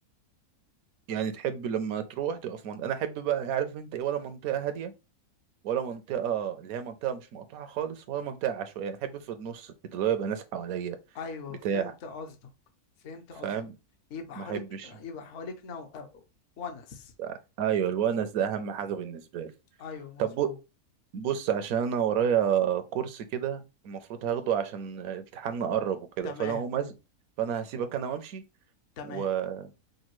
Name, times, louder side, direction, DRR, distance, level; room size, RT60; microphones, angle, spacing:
voice 1, 1.1-4.9 5.6-11.0 11.6-11.9 13.4-13.7 14.4-14.9 17.2-19.5 20.2-20.5 21.1-26.9 27.4-28.4 29.0-29.7, right 9 dB, 75° right, 1.0 m, -30 dB
voice 2, 11.1-12.5 13.0-13.5 14.1-16.2 16.6-17.1 19.8-20.6 26.2-26.6 29.0-29.3, left 5 dB, 60° left, 1.0 m, -41 dB
5.2 x 2.2 x 3.0 m
omnidirectional pair, 1.6 m